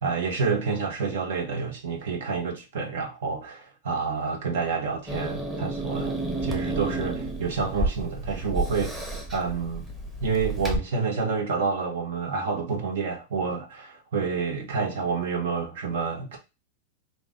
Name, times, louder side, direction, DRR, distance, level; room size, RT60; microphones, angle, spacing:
voice 1, 0.0-6.1 6.4-9.0 9.3-9.9 10.2-16.4, right 5 dB, 75° right, 1.3 m, -28 dB
Growling / Hiss, 5.1-10.8, right 2 dB, 10° right, 1.0 m, -31 dB
3.8 x 2.6 x 3.7 m
supercardioid pair, 145°, 0 cm